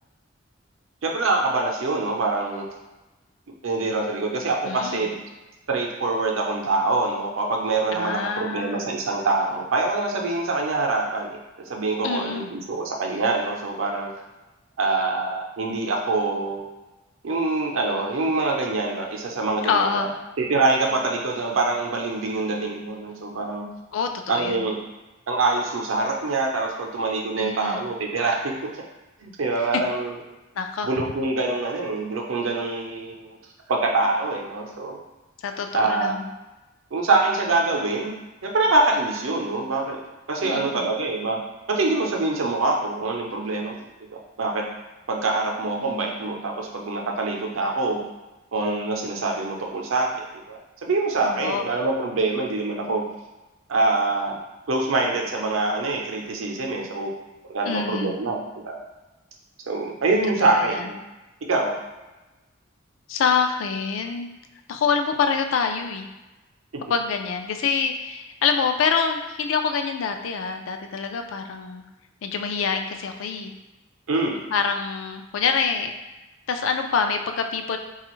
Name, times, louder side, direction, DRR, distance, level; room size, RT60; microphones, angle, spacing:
voice 1, 1.0-2.7 3.6-5.2 5.7-14.1 14.8-16.6 17.2-20.1 20.4-23.6 24.3-24.8 25.3-28.5 29.2-30.1 30.8-33.4 33.7-35.0 35.7-36.3 36.9-38.1 38.4-40.0 40.3-41.4 41.7-43.8 44.1-44.6 45.1-48.0 48.5-53.0 53.7-54.4 54.7-57.1 57.5-58.8 59.7-61.0 61.5-61.7 74.1-74.4, right 3 dB, 85° right, 1 dB, 0.6 m, -25 dB
voice 2, 4.6-5.0 7.9-8.9 12.0-12.5 19.6-20.2 23.9-24.6 27.4-27.9 30.6-30.9 35.4-36.3 40.4-40.9 51.2-51.7 57.6-58.2 60.4-60.9 63.1-64.3 64.7-66.1 66.9-71.8 72.2-73.5 74.5-75.9 76.5-77.8, left 5 dB, 75° left, 6 dB, 0.4 m, -26 dB
4.0 x 2.4 x 3.0 m, 1.1 s
head